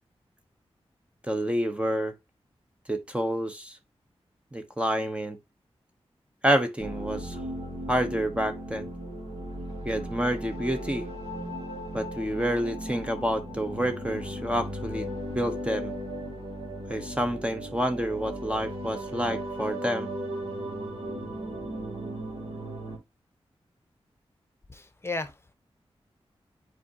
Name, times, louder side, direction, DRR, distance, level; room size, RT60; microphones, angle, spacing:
voice 1, 1.2-2.1 2.9-3.8 4.5-5.4 6.4-7.4 7.9-8.9 9.8-11.1 11.9-15.1 15.3-15.9 16.9-20.1, equal, 10° right, 0.8 m, -28 dB
sound 1, 6.8-23.0, equal, 60° right, 2.7 m, -36 dB
voice 2, 24.7-25.5, left 2 dB, 25° left, 0.9 m, -35 dB
7.5 x 4.6 x 2.8 m
cardioid pair, 65°, 11 cm